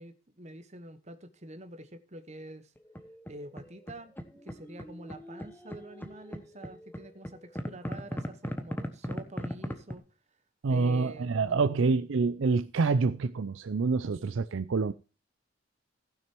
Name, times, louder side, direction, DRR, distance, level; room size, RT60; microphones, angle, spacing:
voice 1, 0.0-2.7 3.3-4.1 4.4-10.0 10.7-11.9, right 1 dB, 30° right, 1.1 m, -46 dB
sound 1, 2.8-3.9 4.2-9.9, equal, 10° left, 1.0 m, -38 dB
voice 2, 10.6-14.9, right 4 dB, 60° right, 0.4 m, -27 dB
15.5 x 6.4 x 4.5 m
head